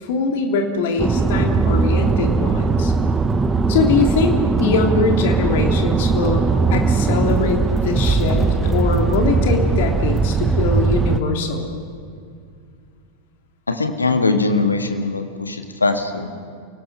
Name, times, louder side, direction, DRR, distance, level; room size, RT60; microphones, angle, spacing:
voice 1, 0.0-2.9 3.7-4.3 4.6-11.7, left 4 dB, 55° left, 3 dB, 3.0 m, -22 dB
sound 1, 1.0-11.2, right 4 dB, 15° right, 0.8 m, -19 dB
voice 2, 13.7-16.3, left 3 dB, 80° left, 6 dB, 1.7 m, -21 dB
29.0 x 18.5 x 5.6 m, 2.3 s
figure-of-eight pair, 90°, 0 cm